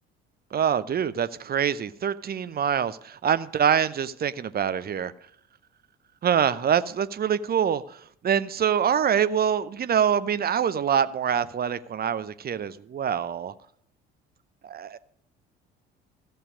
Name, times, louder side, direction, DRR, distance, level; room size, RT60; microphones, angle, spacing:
voice 1, 0.5-5.1 6.2-13.5 14.6-15.0, right 8 dB, 30° right, 0.7 m, -25 dB
15.0 x 6.7 x 6.4 m
figure-of-eight pair, 50°, 33 cm